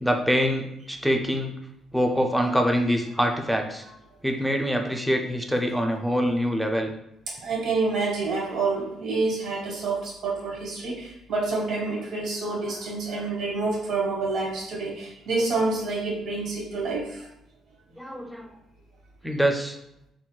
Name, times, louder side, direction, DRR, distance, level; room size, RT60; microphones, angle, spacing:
voice 1, 0.0-1.5 1.9-3.8 4.2-6.9 18.0-18.5 19.2-19.8, equal, ahead, 3 dB, 0.4 m, -24 dB
voice 2, 7.3-17.3, right 3 dB, 75° right, -3 dB, 1.1 m, -28 dB
3.7 x 2.2 x 2.3 m, 0.79 s
cardioid pair, 120°, 0 cm